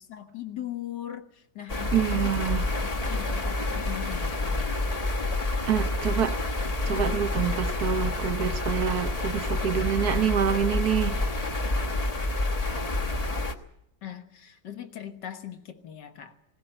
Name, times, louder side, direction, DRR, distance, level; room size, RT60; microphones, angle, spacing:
voice 1, 0.1-4.8 14.0-16.4, left 11 dB, 65° left, 2.0 m, -40 dB
sound 1, 1.7-13.5, left 2 dB, 25° left, 1.1 m, -28 dB
voice 2, 1.9-2.7 5.7-6.4 6.8-11.2, right 9 dB, 60° right, 1.4 m, -27 dB
20.0 x 17.0 x 8.9 m
omnidirectional pair, 2.1 m